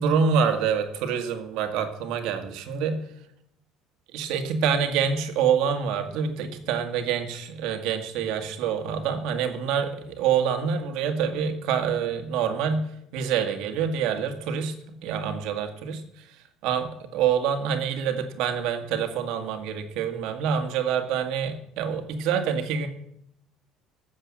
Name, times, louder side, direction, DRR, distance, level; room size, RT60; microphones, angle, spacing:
voice 1, 0.0-3.0 4.1-12.9 13.1-22.9, right 7 dB, 75° right, 6 dB, 1.9 m, -26 dB
13.5 x 7.4 x 7.5 m, 0.77 s
cardioid pair, 145°, 0 cm